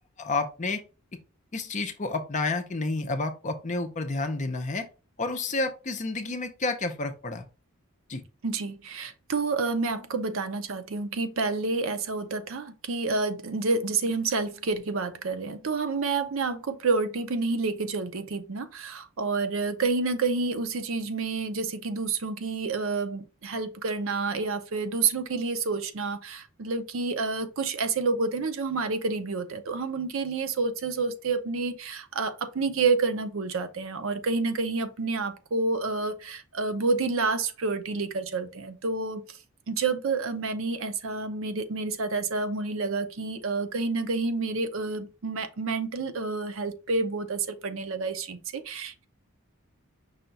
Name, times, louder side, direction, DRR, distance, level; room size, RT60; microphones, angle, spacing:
voice 1, 0.2-0.8 1.5-4.9 5.2-7.5 8.1-8.2, left 3 dB, 35° left, 0.6 m, -30 dB
voice 2, 8.4-39.2 39.7-49.1, right 4 dB, 60° right, 0.6 m, -29 dB
5.6 x 2.3 x 3.9 m
head